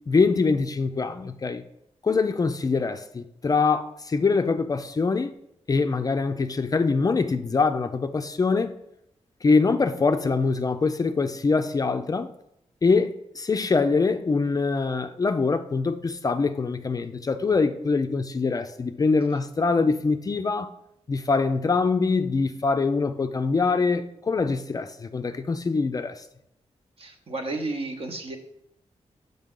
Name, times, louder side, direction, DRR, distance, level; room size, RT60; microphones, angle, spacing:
voice 1, 0.1-1.6 2.0-5.3 5.7-8.7 9.4-12.3 12.8-20.7 21.1-26.2, left 4 dB, 30° left, 0.3 m, -24 dB
voice 2, 27.0-28.4, right 2 dB, 55° right, 0.9 m, -32 dB
6.5 x 5.3 x 3.7 m
wide cardioid pair, 135°, 12 cm